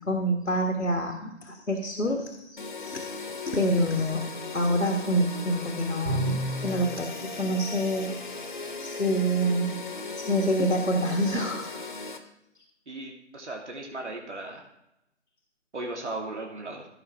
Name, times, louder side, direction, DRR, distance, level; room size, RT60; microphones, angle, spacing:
voice 1, 0.1-2.6 2.8-3.0 3.4-4.3 4.5-8.2 8.8-9.8 10.2-11.7, equal, 90° left, 2 dB, 1.6 m, -27 dB
sound 1, 2.6-12.2, left 3 dB, 40° left, 1.0 m, -38 dB
Bowed string instrument, 6.1-6.9, right 2 dB, 25° right, 1.4 m, -29 dB
voice 2, 12.9-14.7 15.7-16.9, right 2 dB, 65° right, 0 dB, 2.3 m, -36 dB
15.5 x 5.7 x 3.6 m, 0.85 s
figure-of-eight pair, 155°, 37 cm